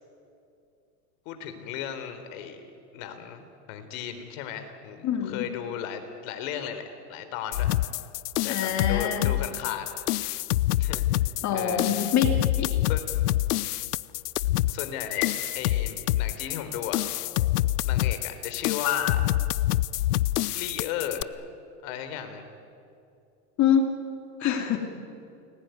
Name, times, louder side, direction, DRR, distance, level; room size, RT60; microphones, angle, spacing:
voice 1, 1.3-2.6 2.9-6.8 7.1-7.7 8.4-9.9 10.8-11.1 11.5-12.0 12.9-13.1 14.7-17.0 17.9-19.3 20.5-21.5 21.8-22.5, left 9 dB, 55° left, 8 dB, 4.0 m, -34 dB
voice 2, 5.0-5.5 8.5-9.3 11.4-12.3 12.6-12.7 23.6-23.9 24.4-24.8, left 8 dB, 35° left, 5 dB, 2.8 m, -25 dB
sound 1, 7.5-21.2, left 15 dB, 75° left, 0.8 m, -26 dB
30.0 x 21.0 x 9.4 m, 2.6 s
supercardioid pair, 130°, 47 cm